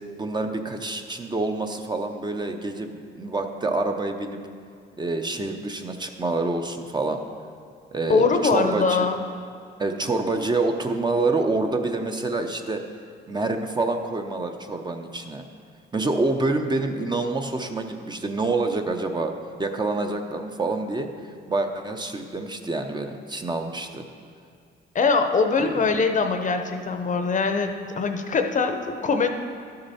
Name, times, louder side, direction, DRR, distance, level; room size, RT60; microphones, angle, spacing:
voice 1, 0.2-4.4 5.0-7.2 7.9-9.1 9.8-12.8 13.3-15.4 15.9-19.3 19.6-21.1 21.5-24.0 25.6-25.8, right 3 dB, 20° right, 5 dB, 0.7 m, -27 dB
voice 2, 8.1-9.2 24.9-29.3, left 4 dB, 40° left, 6 dB, 0.7 m, -22 dB
12.0 x 6.6 x 4.2 m, 2.2 s
cardioid pair, 90°, 20 cm